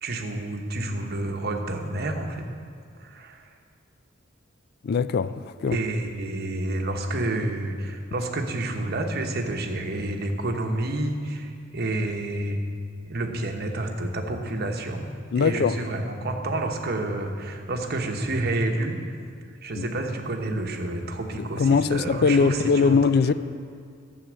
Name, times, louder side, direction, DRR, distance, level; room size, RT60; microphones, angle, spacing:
voice 1, 0.0-2.4 3.0-3.5 5.7-12.6 13.1-19.0 19.6-23.0, right 2 dB, 50° right, 3 dB, 1.1 m, -29 dB
voice 2, 4.8-5.8 15.3-15.8 19.7-19.9 21.4-23.3, left 5 dB, 50° left, 14 dB, 0.3 m, -21 dB
11.5 x 7.9 x 6.3 m, 2.2 s
head